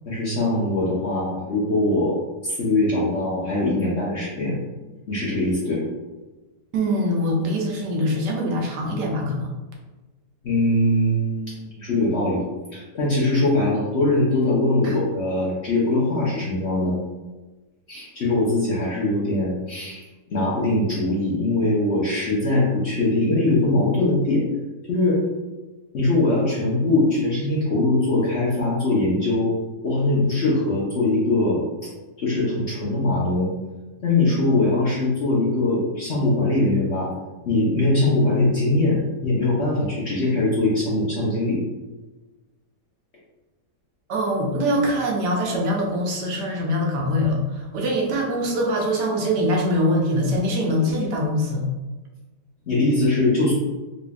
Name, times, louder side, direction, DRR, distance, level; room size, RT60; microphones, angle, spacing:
voice 1, 0.1-2.2 2.4-4.6 5.1-5.8 10.4-12.4 12.7-17.0 17.9-24.4 24.9-25.2 25.9-29.5 29.8-31.9 32.2-33.5 34.0-37.1 37.5-41.6 52.7-53.5, left 2 dB, 50° left, -7 dB, 0.9 m, -22 dB
voice 2, 6.7-9.5 14.8-14.9 44.1-51.7, equal, 75° right, -1 dB, 1.2 m, -23 dB
4.0 x 3.1 x 2.3 m, 1.2 s
omnidirectional pair, 1.9 m